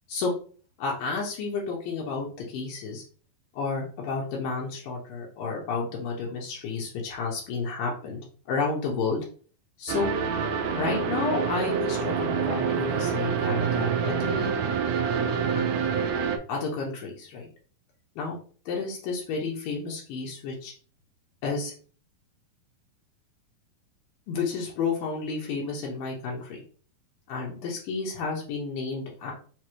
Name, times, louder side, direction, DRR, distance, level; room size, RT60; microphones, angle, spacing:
voice 1, 0.8-3.0 3.5-9.2 9.8-10.1 10.8-14.6 15.5-15.8 16.5-17.5 18.2-18.4 18.7-20.7 21.4-21.7 24.3-26.6 27.3-29.3, left 4 dB, 80° left, -2 dB, 2.6 m, -31 dB
sound 1, 9.9-16.4, right 6 dB, 80° right, 1.8 m, -27 dB
6.0 x 2.6 x 3.0 m, 0.41 s
omnidirectional pair, 4.0 m